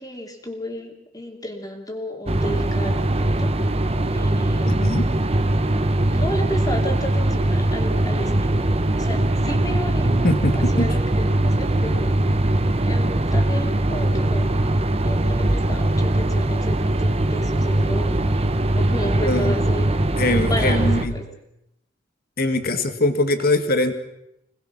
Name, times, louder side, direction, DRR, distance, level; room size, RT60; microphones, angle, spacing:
voice 1, 0.0-3.5 4.1-4.8 6.1-8.7 8.9-10.2 10.5-12.2 12.8-14.5 15.0-18.3 18.8-20.0 20.5-21.2, equal, 20° left, 2 dB, 3.2 m, -32 dB
sound 1, 2.3-21.1, right 1 dB, 35° right, 1.2 m, -21 dB
voice 2, 4.7-5.1 10.2-10.9 19.2-19.7 20.2-21.1 22.4-23.9, left 2 dB, 55° left, 8 dB, 2.1 m, -22 dB
27.0 x 19.5 x 6.2 m, 0.80 s
head